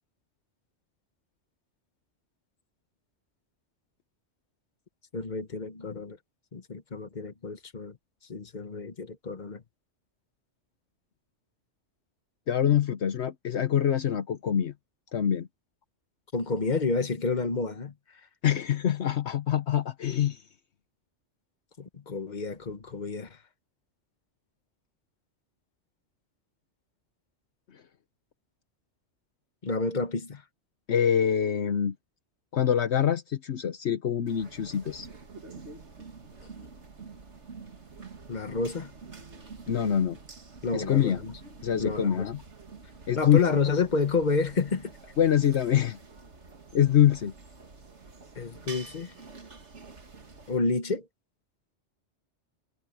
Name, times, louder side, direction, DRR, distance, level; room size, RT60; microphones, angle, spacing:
voice 1, 5.1-6.2 6.5-7.9 8.3-9.6 16.3-17.9 21.8-23.3 29.6-30.4 38.3-38.9 40.6-41.3 41.8-42.2 43.2-44.9 48.4-49.1 50.5-51.1, left 4 dB, 40° left, 1.4 m, -29 dB
voice 2, 12.5-14.7 15.1-15.5 18.4-20.4 30.9-31.9 32.5-35.1 39.7-40.2 40.7-41.2 41.6-42.4 43.1-43.4 45.2-46.0 46.7-47.3, left 9 dB, 70° left, 1.1 m, -25 dB
sound 1, 34.3-50.6, right 4 dB, 70° right, 2.4 m, -47 dB
omnidirectional pair, 1.2 m